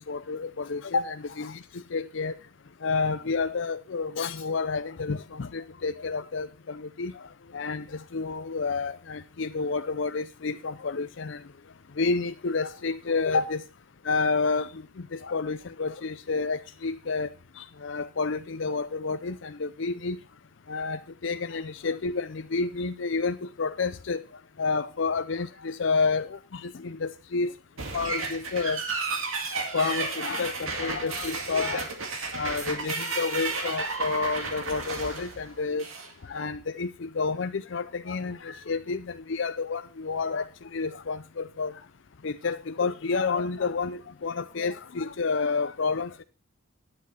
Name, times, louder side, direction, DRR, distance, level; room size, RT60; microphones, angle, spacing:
voice 1, 0.0-2.4 2.8-11.4 12.0-13.6 14.0-17.3 17.6-20.2 20.7-24.2 24.6-27.5 27.9-28.8 29.7-31.9 32.3-35.9 36.2-41.7 42.2-46.2, left 4 dB, 60° left, 0.5 m, -30 dB
sound 1, 27.8-36.1, right 4 dB, 80° right, 2.2 m, -32 dB
10.5 x 8.6 x 4.3 m
head